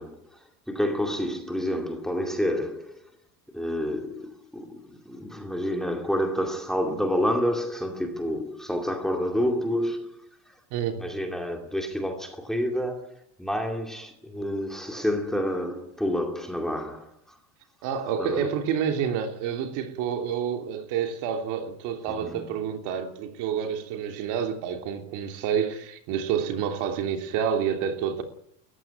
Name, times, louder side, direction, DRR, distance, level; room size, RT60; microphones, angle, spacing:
voice 1, 0.0-3.1 3.5-10.6 11.0-17.4 18.2-18.6 22.1-22.5, equal, ahead, 2.3 m, -29 dB
voice 2, 10.7-11.0 17.8-28.2, right 8 dB, 50° right, 3.2 m, -28 dB
20.5 x 15.0 x 9.4 m
cardioid pair, 175°, 39 cm